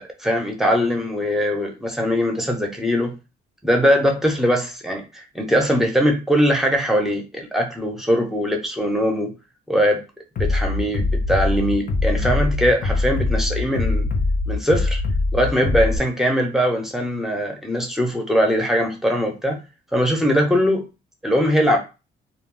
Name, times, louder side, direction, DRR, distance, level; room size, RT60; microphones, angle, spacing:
voice 1, 0.2-3.1 3.6-9.3 9.7-10.0 10.4-14.1 14.5-15.0 15.3-19.6 19.9-20.9 21.2-21.8, equal, ahead, 2 dB, 0.8 m, -21 dB
Bass drum, 10.4-16.0, left 3 dB, 45° left, 0.6 m, -22 dB
2.3 x 2.0 x 3.7 m, 0.29 s
cardioid pair, 90°, 20 cm